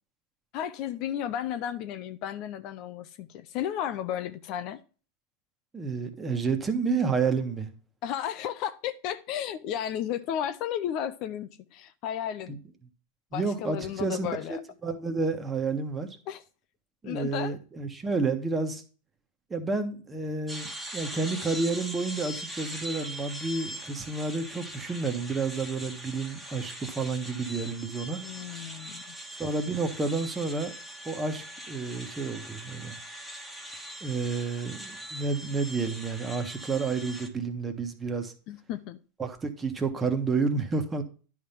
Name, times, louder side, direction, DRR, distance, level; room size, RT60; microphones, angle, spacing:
voice 1, 0.5-4.8 8.0-12.5 13.3-14.6 16.3-16.4 17.0-17.6 28.2-29.2 38.5-39.0, left 10 dB, 50° left, 0.6 m, -33 dB
voice 2, 5.7-7.7 12.5-12.6 13.3-16.1 17.0-18.8 19.5-28.2 29.4-30.7 31.0-33.0 34.0-38.3 39.2-41.0, right 4 dB, 15° right, 1.4 m, -30 dB
sound 1, 20.5-37.3, right 1 dB, ahead, 1.6 m, -41 dB
10.0 x 3.6 x 5.7 m
hypercardioid pair, 115°, 0 cm